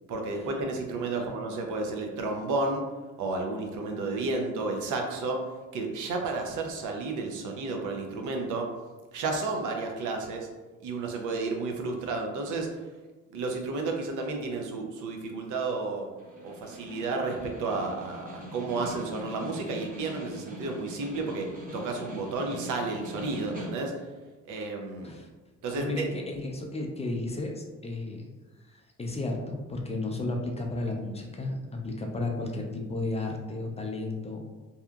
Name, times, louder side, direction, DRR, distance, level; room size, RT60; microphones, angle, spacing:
voice 1, 0.1-2.8 3.2-5.5 5.7-8.7 9.1-10.5 10.8-12.8 13.3-16.1 16.4-24.1 24.4-25.1 25.6-26.1, right 3 dB, 80° right, 2 dB, 0.6 m, -32 dB
Snare drum, 16.2-24.1, left 1 dB, 30° right, 0.7 m, -43 dB
voice 2, 25.7-28.3 28.7-31.5 31.8-34.5, left 2 dB, 20° left, 1 dB, 0.4 m, -33 dB
2.7 x 2.4 x 2.3 m, 1.2 s
cardioid pair, 90°, 30 cm